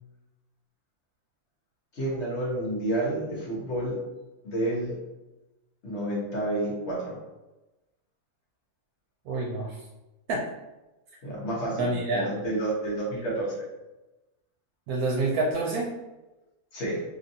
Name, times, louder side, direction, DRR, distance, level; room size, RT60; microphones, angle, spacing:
voice 1, 1.9-4.0 4.4-5.0 5.8-7.2 11.2-13.5 16.7-17.0, right 1 dB, 55° left, -5 dB, 1.4 m, -30 dB
voice 2, 9.3-9.8 10.3-10.4 11.8-12.3 14.9-15.9, right 2 dB, 85° right, -4 dB, 1.1 m, -27 dB
3.2 x 2.5 x 2.6 m, 1.0 s
omnidirectional pair, 1.5 m